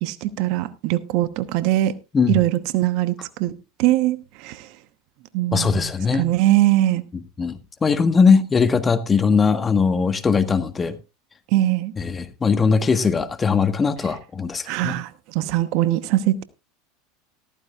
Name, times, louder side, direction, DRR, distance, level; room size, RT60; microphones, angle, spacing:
voice 1, 0.0-1.9 2.3-3.5 3.8-4.7 5.3-7.0 11.5-11.9 14.7-16.4, right 15 dB, 60° right, 1.0 m, -21 dB
voice 2, 5.5-6.3 7.4-11.0 12.0-14.9, left 5 dB, 25° left, 1.5 m, -20 dB
14.0 x 14.0 x 2.4 m
hypercardioid pair, 85°, 0 cm